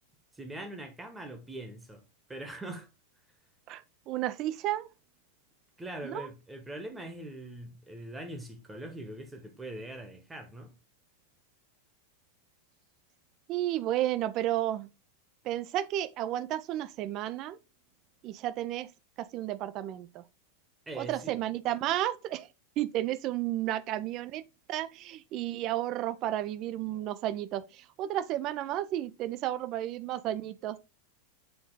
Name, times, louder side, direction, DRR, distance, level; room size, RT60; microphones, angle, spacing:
voice 1, 0.3-2.0 2.3-2.9 5.8-10.7 20.9-21.4, right 1 dB, 10° right, 1.1 m, -42 dB
voice 2, 3.7-4.9 6.0-6.3 13.5-14.9 15.4-17.6 18.2-18.9 19.2-20.2 21.0-22.5 22.8-24.4 24.7-30.8, right 13 dB, 35° right, 0.5 m, -32 dB
6.9 x 3.9 x 3.7 m
figure-of-eight pair, 90°, 0 cm